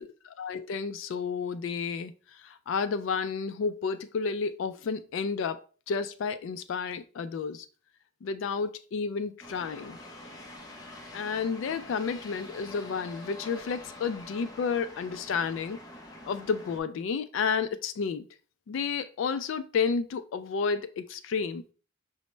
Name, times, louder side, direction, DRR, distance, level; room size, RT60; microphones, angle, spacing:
voice 1, 0.4-5.6 5.9-7.7 8.2-10.0 11.1-15.8 16.3-18.3 18.7-21.6, left 5 dB, 65° left, 0.3 m, -31 dB
sound 1, 9.4-16.8, left 2 dB, 20° left, 0.6 m, -46 dB
6.0 x 2.1 x 3.1 m
head